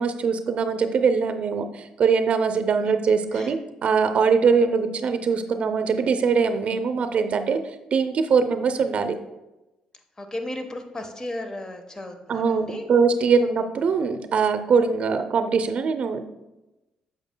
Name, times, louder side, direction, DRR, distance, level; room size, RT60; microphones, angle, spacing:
voice 1, 0.0-9.2 12.3-16.2, right 5 dB, 60° right, 9 dB, 0.5 m, -22 dB
voice 2, 10.2-12.9, left 1 dB, 25° left, 6 dB, 1.0 m, -35 dB
7.8 x 6.8 x 2.2 m, 1.0 s
supercardioid pair, 65°, 2 cm